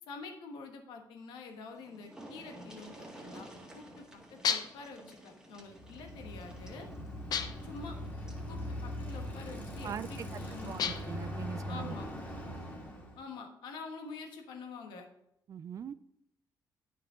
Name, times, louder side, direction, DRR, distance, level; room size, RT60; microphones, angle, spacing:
voice 1, 0.0-3.5 3.7-6.9 7.6-8.0 8.5-10.9 11.7-12.1 13.2-15.1, left 4 dB, 85° left, 4 dB, 1.2 m, -47 dB
sound 1, 1.4-1.5 1.7-8.5 9.8-9.9 10.3-10.4, right 1 dB, 10° right, 1.8 m, -52 dB
sound 2, 4.4-4.9 7.3-7.8 10.8-11.2, left 7 dB, 60° left, 0.6 m, -33 dB
Bicycle, 5.7-13.2, left 1 dB, 25° left, 2.3 m, -41 dB
voice 2, 9.8-10.3 10.6-12.1 15.5-15.9, right 8 dB, 45° right, 15 dB, 0.3 m, -41 dB
9.1 x 5.5 x 3.7 m, 0.80 s
cardioid pair, 90°, 8 cm